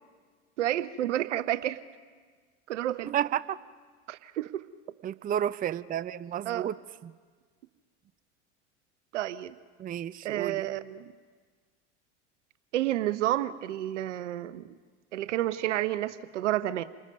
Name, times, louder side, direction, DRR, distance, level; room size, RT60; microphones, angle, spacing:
voice 1, 0.6-1.8 2.7-3.1 4.1-4.6 6.5-6.7 9.1-9.6 10.2-11.0 12.7-14.6 15.1-16.8, right 13 dB, 80° right, 14 dB, 0.9 m, -30 dB
voice 2, 3.1-3.6 5.0-6.8 7.0-7.1 9.8-10.7, right 10 dB, 25° right, 15 dB, 0.5 m, -31 dB
29.0 x 19.5 x 5.4 m, 1.6 s
hypercardioid pair, 85°, 35 cm